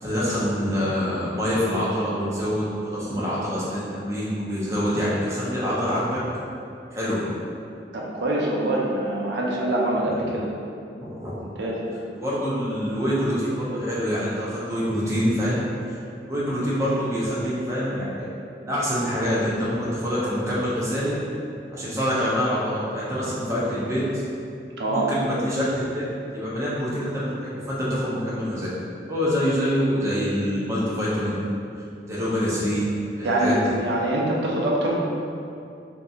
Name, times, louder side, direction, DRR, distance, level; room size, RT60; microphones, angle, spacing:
voice 1, 0.0-6.2 6.9-7.2 10.0-10.1 11.0-11.4 12.2-15.6 15.9-16.0 16.3-18.3 18.6-21.2 21.7-24.2 24.9-26.0 26.3-28.7 29.1-31.4 32.1-32.9 33.2-33.6, equal, 15° right, -8 dB, 0.5 m, -25 dB
voice 2, 7.9-10.5 11.4-11.8 24.8-25.1 33.2-34.9, right 1 dB, 80° right, -3 dB, 0.5 m, -24 dB
2.7 x 2.6 x 2.3 m, 2.5 s
head